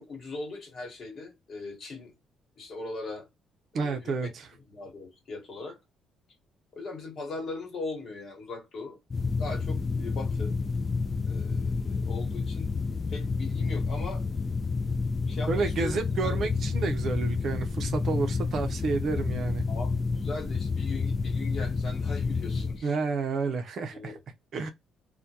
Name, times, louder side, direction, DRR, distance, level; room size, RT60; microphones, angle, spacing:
voice 1, 0.0-2.1 2.6-3.3 3.7-4.3 4.6-5.8 6.7-9.0 9.4-10.5 11.2-12.7 13.1-14.2 15.3-16.5 19.7-22.9 23.9-24.2, left 3 dB, 55° left, 1.2 m, -39 dB
voice 2, 3.7-4.5 15.5-19.6 22.8-24.2 24.5-24.7, right 4 dB, 55° right, 0.5 m, -30 dB
sound 1, 9.1-22.8, left 4 dB, 30° left, 0.3 m, -29 dB
2.2 x 2.1 x 2.7 m
cardioid pair, 100°, 0 cm